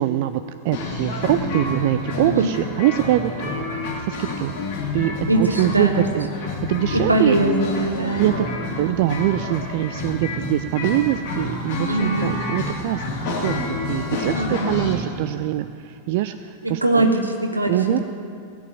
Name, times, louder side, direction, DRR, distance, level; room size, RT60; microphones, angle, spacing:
voice 1, 0.0-3.7 4.0-4.5 4.9-7.4 8.2-8.5 8.8-17.1 17.7-18.0, right 14 dB, 50° right, 11 dB, 0.4 m, -23 dB
sound 1, 0.7-14.9, left 2 dB, 50° left, 3.4 m, -28 dB
voice 2, 5.3-6.1 6.9-8.3 11.8-12.3 14.3-14.7 16.6-18.0, right 2 dB, 85° right, 4 dB, 1.5 m, -21 dB
17.0 x 7.1 x 9.2 m, 2.4 s
figure-of-eight pair, 90°, 0 cm